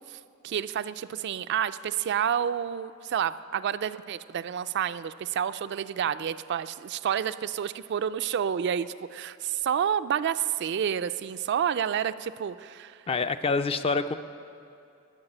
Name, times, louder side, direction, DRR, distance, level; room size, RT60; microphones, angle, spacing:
voice 1, 0.0-13.0, right 8 dB, 55° right, 13 dB, 0.3 m, -29 dB
voice 2, 13.1-14.1, left 4 dB, 25° left, 10 dB, 0.4 m, -26 dB
12.0 x 7.2 x 10.0 m, 2.5 s
head